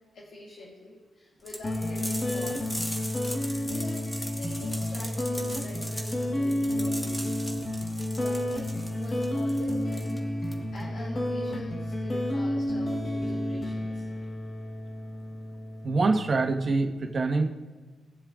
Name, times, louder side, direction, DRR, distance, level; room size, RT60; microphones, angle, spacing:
voice 1, 0.0-2.8 3.6-7.7 8.1-14.3, left 1 dB, 70° left, -4 dB, 2.1 m, -44 dB
sound 1, 1.5-10.9, equal, 10° left, 1.6 m, -40 dB
sound 2, 1.6-16.7, left 1 dB, 30° left, 1.2 m, -31 dB
voice 2, 15.8-17.5, right 3 dB, 50° right, 3 dB, 1.3 m, -25 dB
19.5 x 7.4 x 2.5 m, 1.3 s
cardioid pair, 85°, 0 cm